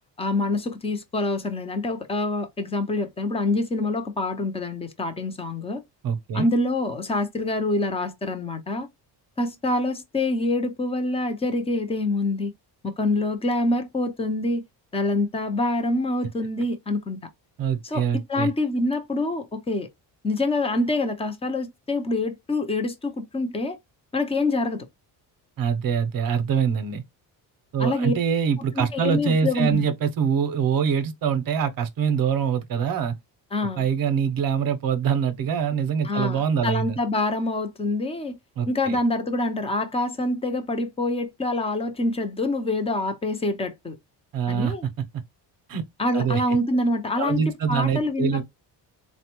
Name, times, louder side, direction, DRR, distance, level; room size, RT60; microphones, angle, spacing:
voice 1, 0.2-5.8 6.3-8.9 9.4-12.5 12.8-14.6 14.9-17.2 17.8-18.0 18.3-19.9 20.2-23.8 24.1-24.9 27.8-28.1 28.8-29.8 33.5-33.8 36.0-38.4 38.7-44.0 44.5-44.9 46.0-47.4 47.7-48.4, left 2 dB, 15° left, 0.4 m, -26 dB
voice 2, 6.0-6.5 17.6-18.5 25.6-27.0 27.7-33.2 33.8-37.0 38.6-39.0 44.3-45.2 45.7-45.8 46.1-46.6 47.2-48.4, right 7 dB, 55° right, 0.7 m, -24 dB
4.1 x 2.1 x 2.9 m
cardioid pair, 165°, 42 cm